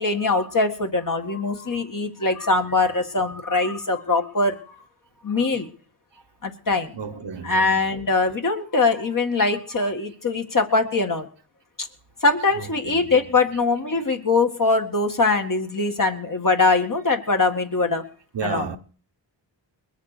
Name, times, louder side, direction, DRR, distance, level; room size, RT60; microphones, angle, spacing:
voice 1, 0.0-4.8 5.2-5.7 6.4-6.9 7.4-11.3 11.8-11.9 12.2-18.0 18.4-18.7, left 3 dB, 45° left, 2.0 m, -22 dB
voice 2, 6.9-7.9 12.8-13.1 18.3-18.8, right 6 dB, 70° right, 1.2 m, -32 dB
21.5 x 7.3 x 6.8 m
wide cardioid pair, 90°, 44 cm